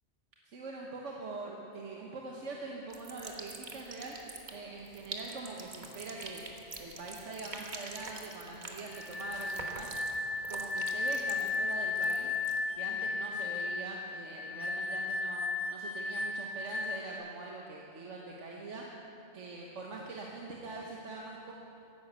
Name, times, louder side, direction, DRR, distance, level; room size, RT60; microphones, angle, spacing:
voice 1, 0.4-4.2 4.5-6.4 6.8-9.9 10.4-12.3 12.7-15.4 15.7-18.9 19.3-21.5, right 3 dB, 85° right, -1 dB, 1.5 m, -43 dB
sound 1, 2.9-12.6, right 2 dB, 40° right, 1.4 m, -46 dB
sound 2, 8.9-17.2, left 3 dB, 10° right, 1.7 m, -35 dB
13.5 x 11.0 x 8.1 m, 2.9 s
omnidirectional pair, 1.2 m